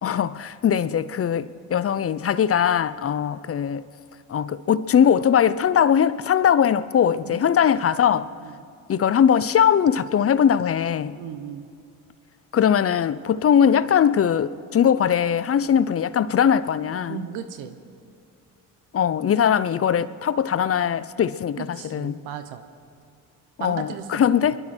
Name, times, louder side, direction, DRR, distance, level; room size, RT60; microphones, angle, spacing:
voice 1, 0.0-3.8 4.3-8.3 8.9-11.2 12.5-17.2 18.9-22.2 23.6-24.6, left 8 dB, 40° left, 0.6 m, -20 dB
voice 2, 11.1-11.7 17.1-17.8 21.6-22.6 23.6-24.5, right 8 dB, 85° right, 1.1 m, -36 dB
23.5 x 11.5 x 4.4 m
supercardioid pair, 65°, 38 cm